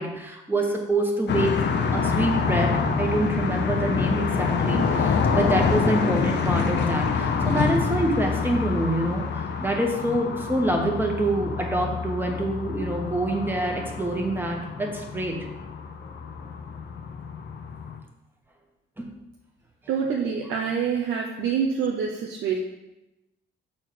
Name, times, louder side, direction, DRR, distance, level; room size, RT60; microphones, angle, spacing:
voice 1, 0.0-15.5 19.0-19.1, right 1 dB, 10° right, 1 dB, 1.5 m, -26 dB
sound 1, 1.3-18.0, left 5 dB, 60° left, 0.8 m, -26 dB
voice 2, 19.9-22.6, right 6 dB, 90° right, -1 dB, 0.9 m, -26 dB
6.2 x 4.4 x 6.2 m, 0.96 s
cardioid pair, 90°, 20 cm